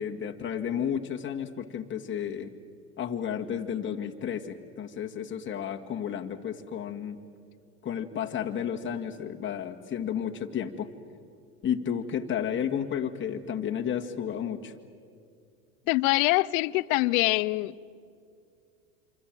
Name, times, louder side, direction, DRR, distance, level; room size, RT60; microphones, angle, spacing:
voice 1, 0.0-2.5 3.0-7.2 7.8-10.9 11.6-14.7, left 8 dB, 25° left, 2.0 m, -32 dB
voice 2, 15.9-17.7, left 21 dB, 60° left, 0.8 m, -24 dB
27.5 x 25.5 x 7.7 m
hypercardioid pair, 105°, 47 cm